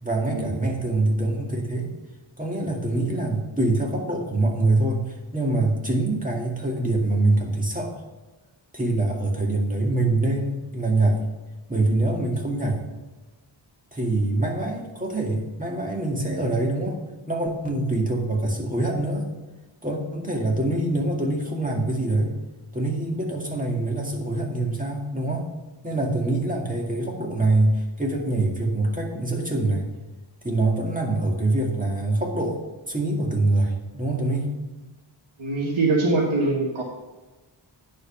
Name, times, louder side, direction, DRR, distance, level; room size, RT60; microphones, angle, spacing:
voice 1, 0.0-1.9 2.4-8.0 8.7-11.2 11.7-12.8 13.9-17.0 17.3-19.3 19.8-22.3 22.7-25.5 25.8-29.9 30.4-32.6 32.9-34.5, right 2 dB, 15° right, -1 dB, 2.1 m, -24 dB
voice 2, 35.4-36.8, right 3 dB, 85° right, -2 dB, 1.5 m, -23 dB
9.7 x 5.3 x 5.9 m, 1.2 s
wide cardioid pair, 65°, 47 cm